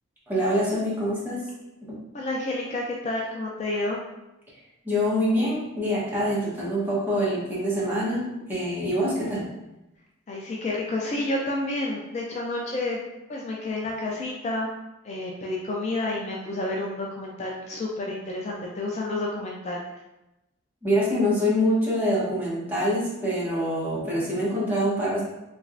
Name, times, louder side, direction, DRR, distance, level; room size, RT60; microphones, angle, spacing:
voice 1, 0.3-1.4 4.8-9.4 20.8-25.2, equal, 10° right, -8 dB, 1.0 m, -25 dB
voice 2, 2.1-4.0 10.3-13.0 13.3-14.7 15.0-19.8, left 2 dB, 35° left, -2 dB, 0.3 m, -30 dB
3.3 x 3.1 x 2.5 m, 0.96 s
head